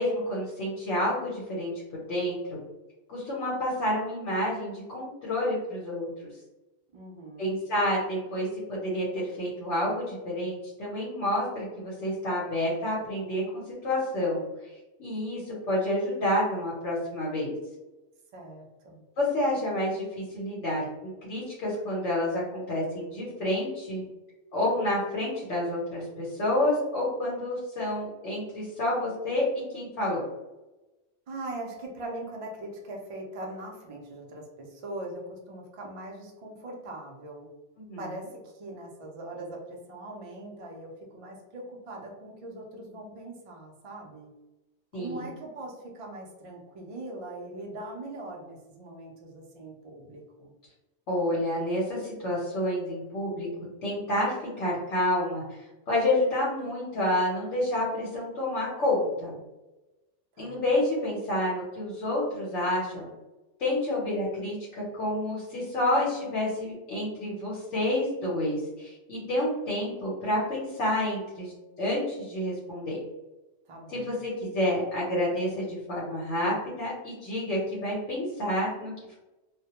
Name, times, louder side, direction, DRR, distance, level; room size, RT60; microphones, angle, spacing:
voice 1, 0.0-1.7 2.1-2.6 3.1-6.1 7.4-14.4 15.0-17.5 19.2-24.0 24.5-29.4 29.7-30.2 37.8-38.0 44.9-45.3 51.1-53.5 53.8-59.3 60.4-63.1 63.6-71.5 71.8-73.0 73.9-74.1 74.5-79.1, left 1 dB, 80° left, -6 dB, 1.0 m, -29 dB
voice 2, 6.9-7.5 18.3-19.0 31.3-37.5 38.0-44.3 44.9-50.5 60.3-60.6 73.7-74.1, right 2 dB, 55° right, 0 dB, 0.4 m, -41 dB
2.2 x 2.1 x 2.8 m, 1.1 s
omnidirectional pair, 1.2 m